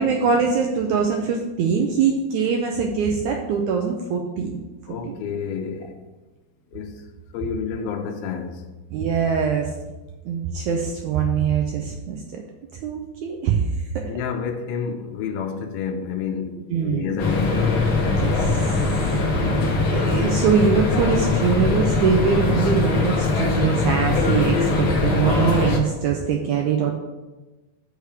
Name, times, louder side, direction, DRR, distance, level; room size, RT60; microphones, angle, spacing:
voice 1, 0.0-4.6 5.0-5.2 8.9-9.7 10.3-12.4 12.8-13.7 16.7-17.1 18.2-18.8 19.4-26.9, right 6 dB, 85° right, 1.7 m, -23 dB
voice 2, 4.9-6.0 6.7-7.0 7.3-8.6 14.0-17.8, left 6 dB, 90° left, 2.5 m, -29 dB
sound 1, 17.2-25.8, left 3 dB, 70° left, 1.1 m, -21 dB
6.4 x 4.9 x 6.9 m
omnidirectional pair, 4.2 m